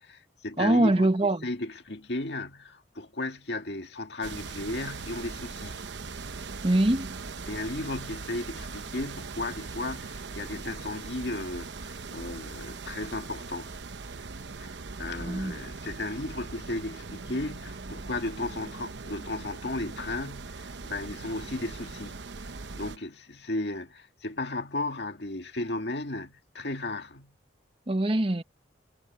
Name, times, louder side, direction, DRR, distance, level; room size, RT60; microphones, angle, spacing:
voice 1, 0.0-1.1 1.4-5.8 7.5-13.7 14.6-22.2 22.5-27.3, left 2 dB, 70° left, 2.0 m, -35 dB
voice 2, 0.6-1.5 6.6-7.1 15.2-15.5 27.9-28.4, right 1 dB, 30° right, 1.0 m, -23 dB
sound 1, 4.2-23.0, right 4 dB, 80° right, 0.9 m, -40 dB
head